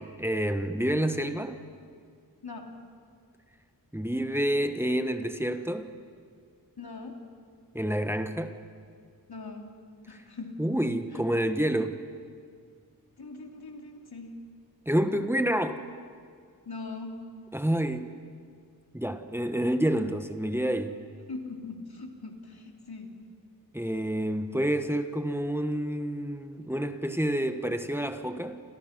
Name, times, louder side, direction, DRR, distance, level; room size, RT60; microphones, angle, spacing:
voice 1, 0.0-1.6 3.9-5.9 7.7-8.5 10.6-12.0 14.9-15.8 17.5-18.2 18.9-21.0 23.7-28.6, right 1 dB, 5° right, 8 dB, 1.3 m, -28 dB
voice 2, 2.4-2.7 6.8-7.2 9.3-9.7 10.1-10.6 11.1-11.2 13.2-14.3 16.7-17.2 21.3-23.1, left 3 dB, 80° left, 2 dB, 3.1 m, -41 dB
29.5 x 28.0 x 6.0 m, 2.1 s
wide cardioid pair, 85°, 37 cm